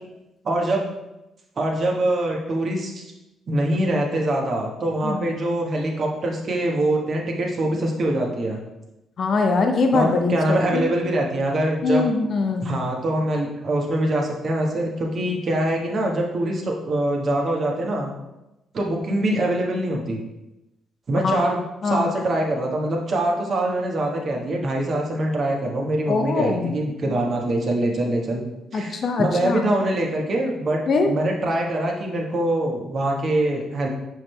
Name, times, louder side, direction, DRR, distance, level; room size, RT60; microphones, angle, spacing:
voice 1, 0.4-0.8 1.6-3.1 3.5-8.6 9.9-12.1 12.6-18.1 18.7-20.2 21.1-28.4 28.7-30.8 31.1-33.9, right 1 dB, 45° right, 0 dB, 1.3 m, -24 dB
voice 2, 9.2-10.9 11.8-12.7 21.2-21.4 21.8-22.0 26.1-26.7 28.7-29.6 30.9-31.1, left 3 dB, 50° left, 4 dB, 0.8 m, -22 dB
6.9 x 6.2 x 2.2 m, 0.94 s
figure-of-eight pair, 40°, 0 cm